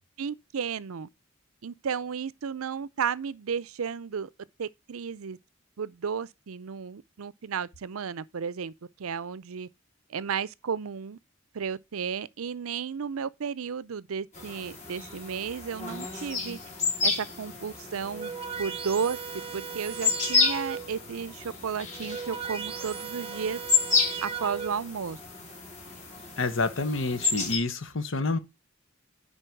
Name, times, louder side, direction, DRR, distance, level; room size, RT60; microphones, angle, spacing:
voice 1, 0.2-1.1 1.6-4.3 4.6-5.4 5.8-8.7 9.0-9.7 10.1-11.2 11.5-16.6 17.0-18.3 18.6-19.2 19.5-23.6 24.2-25.2, right 6 dB, 90° right, 0.5 m, -33 dB
sound 1, 14.3-27.6, left 4 dB, 35° left, 3.2 m, -31 dB
sound 2, 17.9-21.1 21.8-25.0, right 6 dB, 30° right, 0.9 m, -37 dB
voice 2, 26.4-28.4, left 3 dB, 65° left, 1.0 m, -28 dB
10.0 x 4.2 x 4.5 m
head